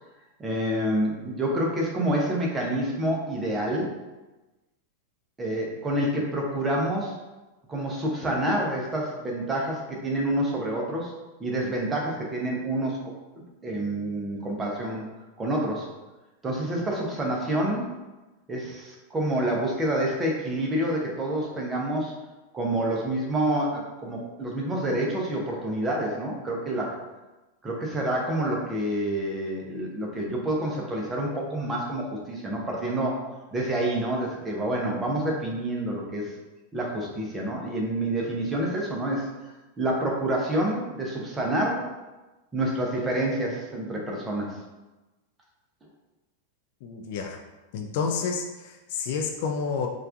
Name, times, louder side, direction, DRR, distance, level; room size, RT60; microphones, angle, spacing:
voice 1, 0.4-3.9 5.4-7.2 7.7-11.1 11.4-13.0 13.6-15.1 15.4-15.9 16.4-17.9 18.5-22.1 22.5-27.0 27.6-33.3 33.5-36.3 36.7-39.3 39.8-41.9 42.5-44.6, right 1 dB, 15° right, -2 dB, 0.8 m, -28 dB
voice 2, 46.8-47.4 47.7-49.9, left 5 dB, 50° left, 3 dB, 0.3 m, -29 dB
4.4 x 2.5 x 2.4 m, 1.1 s
figure-of-eight pair, 90°, 0 cm